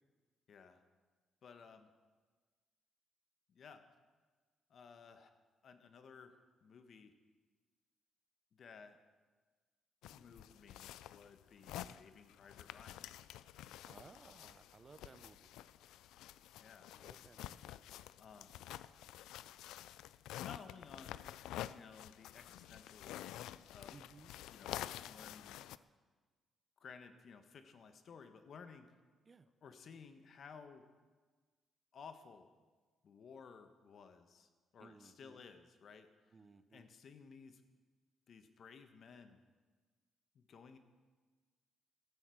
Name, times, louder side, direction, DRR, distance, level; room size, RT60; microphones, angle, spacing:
voice 1, 0.5-0.8 1.4-1.9 3.5-3.8 4.7-5.3 5.6-7.1 8.5-9.0 10.1-13.1 16.6-16.9 18.2-18.6 20.3-21.3 21.7-24.0 24.5-25.6 26.8-28.9 29.6-30.8 31.9-32.5 33.0-36.3 36.7-37.6 38.3-39.4 40.3-40.8, left 5 dB, 55° left, 8 dB, 1.4 m, -56 dB
sound 1, 10.0-25.8, left 13 dB, 90° left, 0.4 m, -49 dB
voice 2, 11.6-12.0 13.8-15.5 17.0-17.7 23.9-24.3 29.2-29.5 34.8-35.4 36.3-36.9, right 4 dB, 35° right, 13 dB, 0.8 m, -60 dB
15.0 x 12.5 x 6.4 m, 1.4 s
cardioid pair, 90°, 0 cm